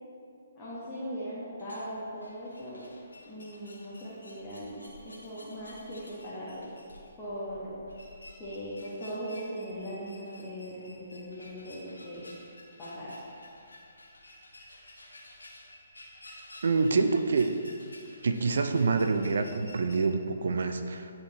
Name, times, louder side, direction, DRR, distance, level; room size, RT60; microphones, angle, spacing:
voice 1, 0.5-2.8 3.2-6.7 7.2-7.8 8.4-12.3 12.8-13.2, equal, 15° left, -11 dB, 1.5 m, -39 dB
sound 1, 1.5-20.0, left 1 dB, 80° left, 1.4 m, -52 dB
voice 2, 16.6-17.6 18.2-21.1, right 4 dB, 65° right, 8 dB, 0.5 m, -26 dB
10.0 x 4.4 x 3.0 m, 2.5 s
figure-of-eight pair, 135°, 0 cm